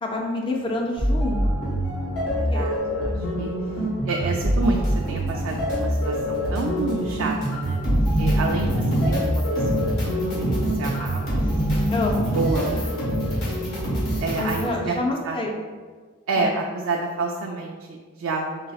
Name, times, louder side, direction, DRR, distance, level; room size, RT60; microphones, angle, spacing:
voice 1, 0.0-1.6 2.2-2.7 11.9-12.3 12.7-12.8 14.4-15.6 16.3-16.5, left 2 dB, 25° left, 1 dB, 0.4 m, -28 dB
sound 1, 1.0-14.7, equal, 80° left, 1.4 m, -24 dB
voice 2, 2.2-3.5 4.1-7.8 8.2-10.5 10.8-11.5 12.3-13.2 14.2-15.0 15.2-15.4 16.3-18.7, right 3 dB, 70° right, 0 dB, 0.3 m, -29 dB
3.9 x 3.3 x 2.3 m, 1.5 s
head